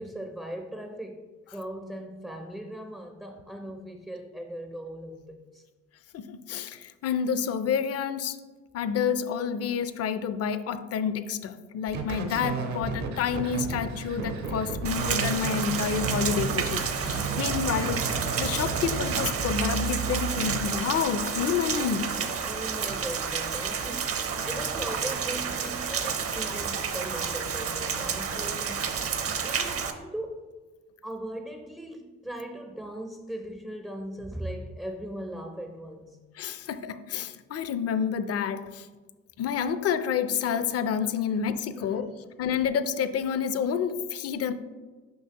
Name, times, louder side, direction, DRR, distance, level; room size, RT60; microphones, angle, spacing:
voice 1, 0.0-5.6 22.4-28.9 29.4-30.5 31.0-36.2 41.3-41.4 41.8-42.0, right 1 dB, 5° right, 5 dB, 0.4 m, -39 dB
voice 2, 6.1-8.4 8.7-22.1 36.4-38.9 39.4-42.1 42.4-44.5, left 7 dB, 55° left, 12 dB, 0.5 m, -29 dB
sound 1, 11.9-20.6, right 4 dB, 70° right, 0.9 m, -32 dB
Rain, 14.8-29.9, right 6 dB, 50° right, 0.6 m, -30 dB
6.5 x 5.2 x 2.9 m, 1.3 s
cardioid pair, 90°, 30 cm